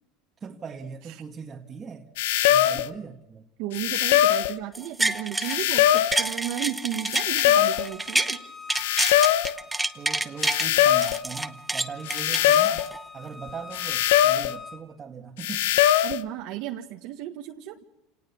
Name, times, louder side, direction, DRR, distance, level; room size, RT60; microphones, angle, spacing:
voice 1, 0.4-2.1 2.5-3.5 9.9-12.9 13.1-15.7, right 6 dB, 25° right, 1.6 m, -39 dB
sound 1, 2.2-2.9 3.7-4.6 5.4-6.2 7.1-7.9 8.7-9.6 10.4-11.2 12.1-12.9 13.7-14.6 15.4-16.2, left 12 dB, 85° left, 0.8 m, -21 dB
voice 2, 3.6-8.4 16.0-17.8, right 13 dB, 65° right, 1.5 m, -34 dB
sound 2, 4.7-5.6 5.9-8.4 8.7-10.7 11.0-13.0 13.5-13.6, right 2 dB, 5° right, 1.0 m, -28 dB
Bowed string instrument, 7.6-14.8, left 4 dB, 15° left, 3.5 m, -45 dB
28.0 x 18.5 x 7.1 m
supercardioid pair, 125°, 0 cm